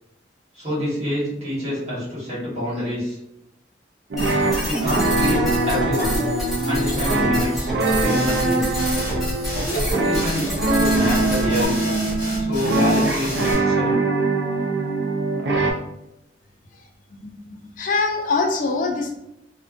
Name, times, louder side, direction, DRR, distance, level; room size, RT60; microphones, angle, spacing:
voice 1, 0.5-3.2 4.7-6.2 6.6-8.8 9.7-11.9 12.4-14.0, left 1 dB, 35° right, -9 dB, 1.2 m, -27 dB
sound 1, 4.1-15.7, right 2 dB, 65° right, 0.4 m, -22 dB
sound 2, 4.2-11.7, equal, ahead, 0.7 m, -27 dB
sound 3, 8.1-8.5 8.7-9.2 9.4-9.9 10.1-10.6 10.8-13.5, equal, 20° left, 1.1 m, -31 dB
voice 2, 17.2-19.2, left 3 dB, 45° left, 2 dB, 0.4 m, -24 dB
2.5 x 2.1 x 2.4 m, 0.86 s
head